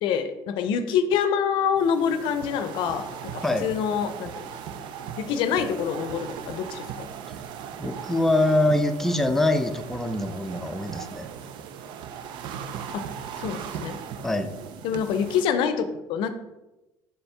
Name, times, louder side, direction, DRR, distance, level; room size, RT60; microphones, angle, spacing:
voice 1, 0.0-4.5 5.2-7.1 12.9-13.0 13.4-14.0 14.8-16.3, left 7 dB, 70° left, 10 dB, 0.5 m, -26 dB
sound 1, 1.7-15.4, right 8 dB, 65° right, 0.5 m, -38 dB
voice 2, 7.8-11.3 14.2-14.5, left 1 dB, 5° left, 5 dB, 0.5 m, -24 dB
6.5 x 4.3 x 3.3 m, 1.0 s
cardioid pair, 105°, 9 cm